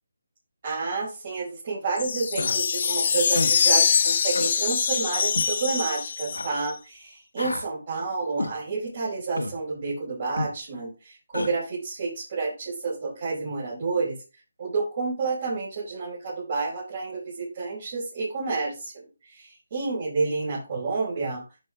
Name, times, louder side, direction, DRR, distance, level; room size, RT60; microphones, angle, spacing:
voice 1, 0.6-14.2 14.6-21.4, right 4 dB, 45° right, -7 dB, 5.1 m, -30 dB
sound 1, 2.0-6.7, left 6 dB, 45° left, 0.6 m, -24 dB
Human voice, 2.4-2.6 3.3-3.6 4.3-4.5 5.3-5.5 6.3-6.5 7.4-7.7 8.4-8.6 9.4-9.6 10.4-10.5 11.3-11.5, left 2 dB, 85° left, 1.4 m, -30 dB
11.0 x 5.6 x 3.7 m, 0.30 s
figure-of-eight pair, 155°, 0 cm